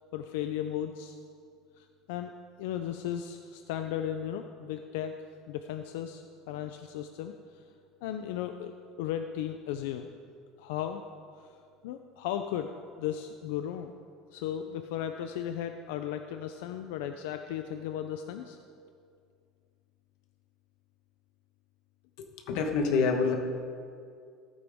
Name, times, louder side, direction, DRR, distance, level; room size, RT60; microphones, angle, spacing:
voice 1, 0.1-1.1 1.8-2.3 2.6-5.1 5.5-7.6 8.0-8.7 9.0-10.1 10.6-11.0 11.8-12.7 13.0-13.9 14.3-18.6, left 10 dB, 90° left, 7 dB, 0.5 m, -35 dB
voice 2, 22.2-23.3, left 5 dB, 60° left, 4 dB, 1.3 m, -27 dB
15.0 x 9.2 x 3.6 m, 2.3 s
cardioid pair, 175°, 0 cm